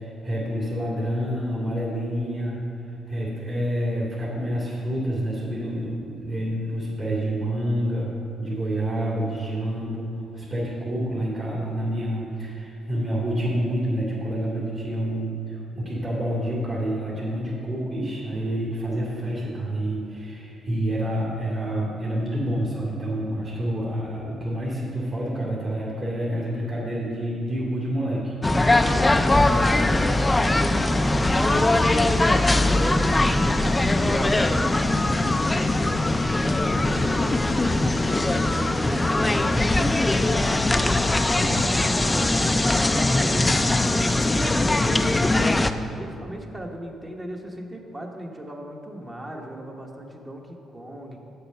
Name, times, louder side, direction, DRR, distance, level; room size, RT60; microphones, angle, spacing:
voice 1, 0.0-2.6 3.1-8.1 8.4-28.3 41.4-41.6, right 1 dB, 45° right, -9 dB, 2.2 m, -28 dB
sound 1, 28.4-45.7, left 2 dB, 15° left, 0.4 m, -21 dB
voice 2, 29.6-33.0 33.4-35.4 35.8-40.7 41.0-45.6 46.0-51.2, right 1 dB, 25° right, 1 dB, 1.1 m, -38 dB
7.4 x 6.8 x 5.6 m, 2.7 s
cardioid pair, 90°, 0 cm